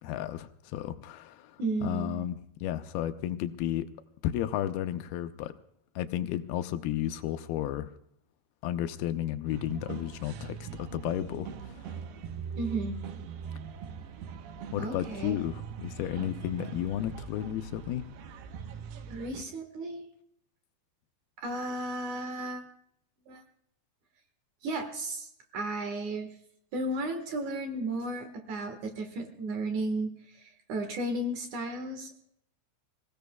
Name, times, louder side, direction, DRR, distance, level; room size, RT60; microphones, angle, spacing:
voice 1, 0.0-3.9 4.2-5.5 6.0-7.9 8.6-12.0 14.7-18.0, left 12 dB, 80° left, 9 dB, 2.5 m, -33 dB
voice 2, 1.6-2.3 12.6-13.0 14.8-15.4 19.1-20.1 21.4-22.6 23.3-23.4 24.6-26.3 26.7-32.2, right 2 dB, 60° right, 6 dB, 2.5 m, -34 dB
sound 1, 9.5-19.4, right 7 dB, 85° right, 3.0 m, -42 dB
27.5 x 16.5 x 2.3 m, 0.70 s
omnidirectional pair, 4.5 m